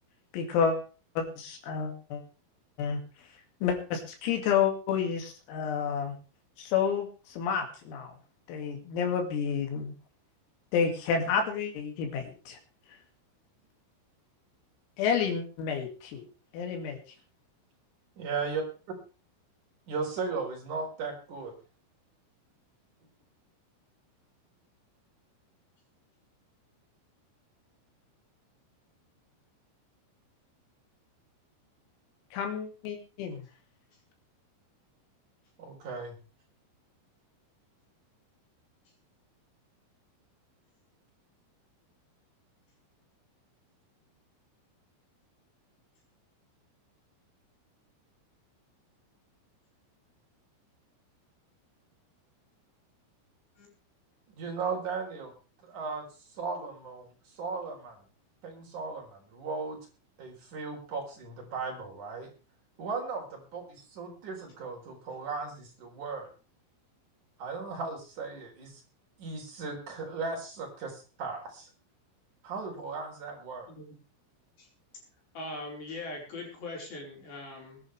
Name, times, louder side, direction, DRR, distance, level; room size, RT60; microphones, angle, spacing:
voice 1, 0.3-0.8 1.2-2.2 2.8-3.0 3.6-6.2 6.6-8.1 8.5-9.9 10.7-12.6 15.0-16.3 16.5-17.0 32.3-33.4, left 7 dB, 90° left, 3 dB, 5.2 m, -30 dB
voice 2, 18.2-18.6 19.9-21.5 35.6-36.2 54.4-55.3 55.6-56.1 56.3-58.0 58.4-59.8 60.2-62.3 62.8-66.3 67.4-68.8 69.2-71.7 72.4-73.7, right 4 dB, 40° right, -1 dB, 5.1 m, -36 dB
voice 3, 75.3-77.8, left 2 dB, 45° left, -1 dB, 6.4 m, -41 dB
22.0 x 11.0 x 3.4 m, 0.35 s
omnidirectional pair, 5.9 m